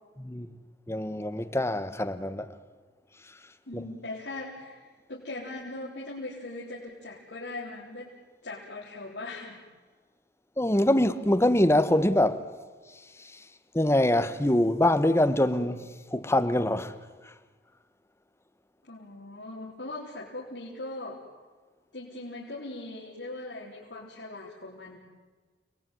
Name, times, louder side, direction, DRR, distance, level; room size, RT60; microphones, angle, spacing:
voice 1, 0.2-0.5 0.9-2.5 3.7-3.8 10.6-12.4 13.2-13.4 13.7-16.9 17.2-17.3, left 1 dB, 15° left, 1.3 m, -24 dB
voice 2, 3.7-8.1 8.4-9.6 18.9-21.2 21.9-25.0, left 2 dB, 75° left, 4.2 m, -40 dB
29.5 x 20.5 x 9.3 m
head